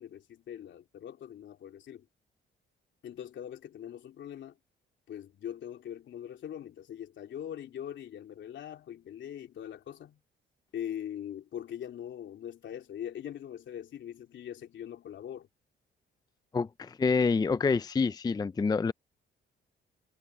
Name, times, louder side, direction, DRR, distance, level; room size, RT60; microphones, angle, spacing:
voice 1, 0.0-2.1 3.0-4.5 5.1-10.2 10.7-15.5, left 10 dB, 70° left, 3.4 m, -42 dB
voice 2, 16.5-18.9, left 4 dB, 20° left, 0.4 m, -27 dB
cardioid pair, 90°, 20 cm